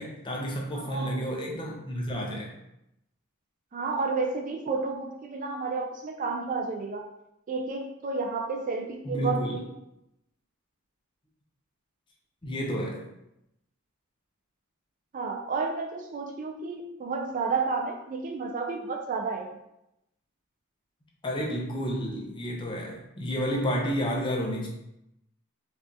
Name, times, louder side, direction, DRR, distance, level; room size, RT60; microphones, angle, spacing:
voice 1, 0.0-2.5 9.0-9.6 12.4-13.0 21.2-24.7, equal, 20° left, -1 dB, 0.5 m, -31 dB
voice 2, 0.7-1.6 3.7-7.1 7.5-9.6 15.1-19.6, right 4 dB, 35° right, 3 dB, 0.3 m, -31 dB
4.7 x 2.4 x 2.7 m, 0.83 s
head